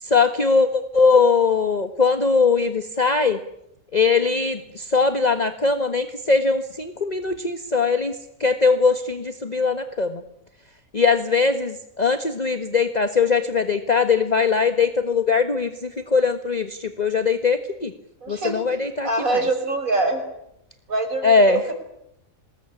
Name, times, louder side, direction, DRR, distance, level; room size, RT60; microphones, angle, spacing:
voice 1, 0.0-3.4 3.9-10.2 10.9-17.9 18.3-19.4 21.2-21.6, left 4 dB, 30° left, 9 dB, 1.6 m, -21 dB
voice 2, 18.2-18.6 19.0-20.2 20.9-21.7, right 2 dB, 75° right, 5 dB, 6.0 m, -24 dB
26.0 x 21.0 x 10.0 m, 0.78 s
omnidirectional pair, 1.5 m